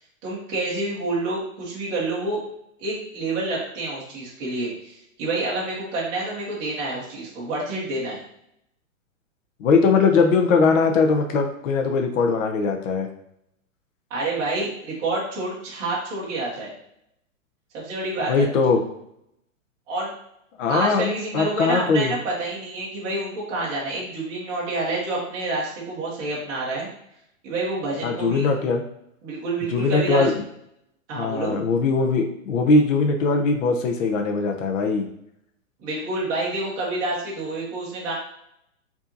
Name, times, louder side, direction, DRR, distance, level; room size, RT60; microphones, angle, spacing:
voice 1, 0.2-2.4 2.8-8.2 14.1-16.7 17.7-18.5 19.9-20.1 20.7-26.9 27.4-28.5 29.2-30.3 31.1-31.6 35.8-38.1, right 2 dB, 10° right, -7 dB, 0.5 m, -28 dB
voice 2, 9.6-13.1 18.3-18.8 20.6-22.1 28.0-28.8 29.7-30.4 31.1-35.1, left 4 dB, 65° left, 3 dB, 0.7 m, -20 dB
4.7 x 2.7 x 2.6 m, 0.76 s
hypercardioid pair, 160°, 41 cm